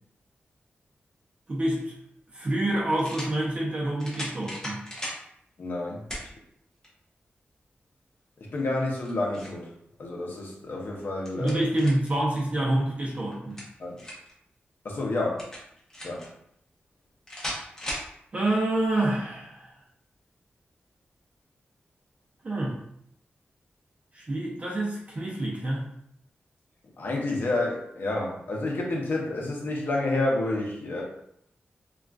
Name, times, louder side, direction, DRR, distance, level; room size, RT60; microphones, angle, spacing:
voice 1, 1.5-2.0 2.3-4.8 11.4-13.6 18.3-19.7 22.4-22.8 24.1-25.8, right 1 dB, 35° right, -4 dB, 0.6 m, -27 dB
sound 1, 1.8-1.9 3.0-3.3 4.0-5.2 6.1-6.3 6.8-6.9 8.8-9.6 11.0-12.1 13.3-14.3 15.4-16.3 17.3-18.1, equal, 15° left, 0.8 m, -37 dB
voice 2, 5.6-6.1 8.4-9.7 10.0-11.6 13.8-14.0 14.8-15.5 16.0-16.3 27.0-31.0, left 2 dB, 60° left, -2 dB, 0.7 m, -29 dB
3.7 x 2.4 x 2.3 m, 0.72 s
wide cardioid pair, 175°, 4 cm